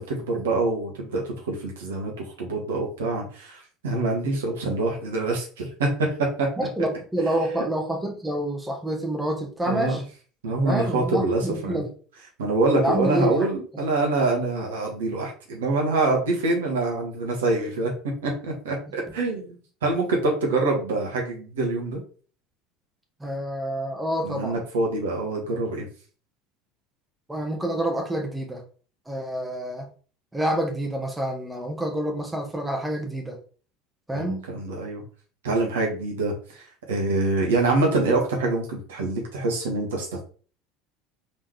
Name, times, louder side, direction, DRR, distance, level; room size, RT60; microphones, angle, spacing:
voice 1, 0.0-6.5 9.7-10.0 10.4-11.8 12.4-17.9 18.2-22.0 24.2-25.8 34.1-35.0 35.4-40.2, right 2 dB, 70° right, 0 dB, 1.5 m, -25 dB
voice 2, 6.6-10.0 10.6-11.9 12.8-13.5 23.2-24.6 27.3-28.6 29.1-29.9 30.3-33.4 34.1-34.5, right 1 dB, 10° right, 2 dB, 1.3 m, -28 dB
4.1 x 3.7 x 3.2 m, 0.40 s
figure-of-eight pair, 70°, 0 cm